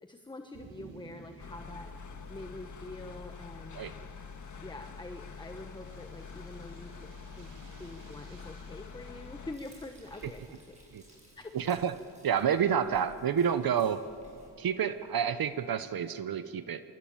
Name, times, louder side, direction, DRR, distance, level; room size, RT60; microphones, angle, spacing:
voice 1, 0.0-1.9 2.3-3.8 4.6-7.1 7.4-7.5 7.8-10.8 11.0-11.5, left 2 dB, 10° left, 6 dB, 1.1 m, -45 dB
sound 1, 0.5-16.2, right 5 dB, 80° right, 3.1 m, -58 dB
sound 2, 1.4-9.6, left 5 dB, 40° left, 1.6 m, -46 dB
Frying (food), 9.5-14.5, right 1 dB, 15° right, 7.9 m, -57 dB
voice 2, 11.5-11.9 12.2-14.0 14.6-16.8, right 8 dB, 55° right, 12 dB, 0.9 m, -29 dB
25.0 x 22.5 x 8.8 m, 2.5 s
wide cardioid pair, 135°, 44 cm